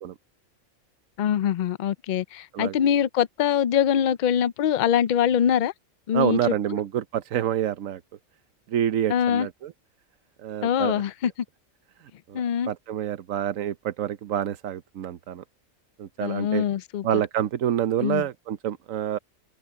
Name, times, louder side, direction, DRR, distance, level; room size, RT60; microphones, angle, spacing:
voice 1, 1.2-5.7 6.1-6.5 9.1-9.5 10.6-11.3 12.3-12.7 16.2-17.2 18.0-18.2, left 9 dB, 65° left, 0.4 m, -23 dB
voice 2, 6.1-8.0 8.7-9.7 10.4-11.0 12.3-12.4 12.7-15.4 16.0-16.6 17.0-19.2, right 10 dB, 90° right, 1.2 m, -27 dB
omnidirectional pair, 1.3 m